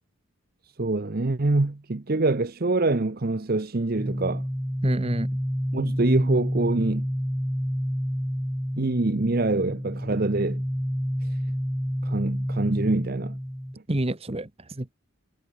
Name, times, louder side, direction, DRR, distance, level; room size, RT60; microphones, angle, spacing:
voice 1, 0.8-4.4 5.7-7.1 8.8-10.6 12.0-13.4, right 2 dB, 45° right, 0.8 m, -25 dB
sound 1, 4.0-13.7, equal, ahead, 1.8 m, -29 dB
voice 2, 4.8-5.4 13.9-14.9, right 1 dB, 25° right, 1.1 m, -28 dB
head